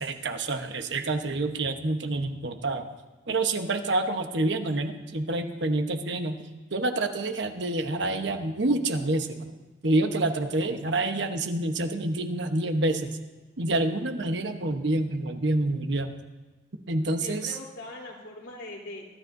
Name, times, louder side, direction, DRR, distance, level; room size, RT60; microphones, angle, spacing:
voice 1, 0.0-2.9 3.3-6.4 6.7-9.5 9.8-13.1 13.6-16.1 16.9-17.5, right 2 dB, 65° right, 6 dB, 1.1 m, -27 dB
voice 2, 14.0-14.5 17.2-19.1, left 2 dB, 85° left, -2 dB, 3.6 m, -42 dB
23.5 x 13.0 x 2.7 m, 1.2 s
head